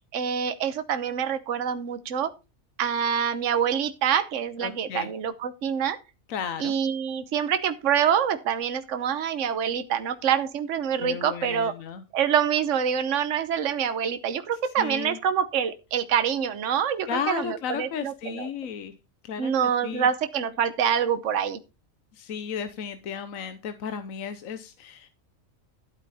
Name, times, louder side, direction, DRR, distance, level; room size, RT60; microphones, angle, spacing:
voice 1, 0.1-2.3 2.8-6.0 6.6-11.7 12.1-18.5 19.4-21.6, right 8 dB, 65° right, 11 dB, 1.3 m, -26 dB
voice 2, 4.6-5.1 6.3-6.7 11.0-12.0 14.8-15.2 17.1-18.9 19.2-20.1 22.1-25.1, left 7 dB, 80° left, 10 dB, 1.3 m, -34 dB
13.0 x 8.3 x 4.2 m, 0.28 s
omnidirectional pair, 1.4 m